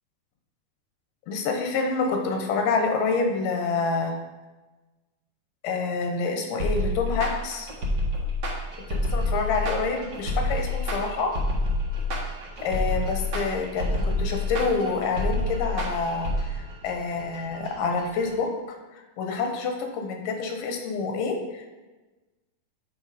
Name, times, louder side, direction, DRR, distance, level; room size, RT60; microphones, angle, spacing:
voice 1, 1.3-4.2 5.6-7.7 8.9-11.3 12.6-18.8 19.2-21.7, left 4 dB, 85° left, 3 dB, 2.6 m, -27 dB
sound 1, 6.6-16.4, left 1 dB, 50° right, 1.3 m, -27 dB
sound 2, 8.7-18.4, right 1 dB, 80° right, 0.9 m, -48 dB
9.6 x 3.4 x 4.9 m, 1.2 s
omnidirectional pair, 3.8 m